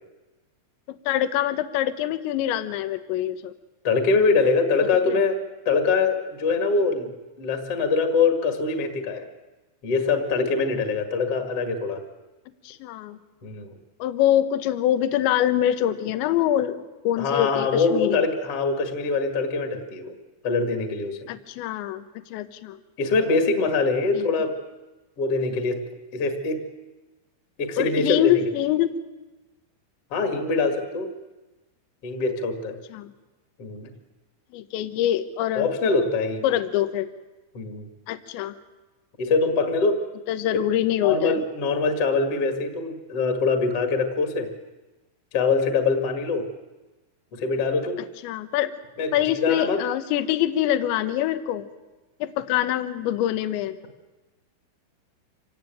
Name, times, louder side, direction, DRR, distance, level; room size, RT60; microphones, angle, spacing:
voice 1, 0.9-3.5 5.1-5.2 12.6-13.2 14.0-18.2 21.3-22.0 22.3-22.8 24.1-24.3 27.8-29.0 32.9-33.1 34.5-35.7 36.4-37.1 38.1-38.5 40.3-41.4 48.2-48.7 49.1-51.6 52.2-53.8, left 12 dB, 75° left, 11 dB, 3.2 m, -24 dB
voice 2, 3.8-5.4 5.7-7.1 7.4-9.2 9.8-12.0 13.4-13.7 17.2-20.1 20.4-21.3 23.0-24.5 25.2-25.8 26.1-26.6 27.6-28.4 30.1-31.1 32.0-32.8 33.6-33.9 35.6-36.4 37.5-37.9 39.2-40.0 41.0-44.5 45.3-46.5 47.3-48.0 49.0-49.8, left 4 dB, 40° left, 5 dB, 2.3 m, -23 dB
26.0 x 18.0 x 9.2 m, 1.2 s
omnidirectional pair, 5.5 m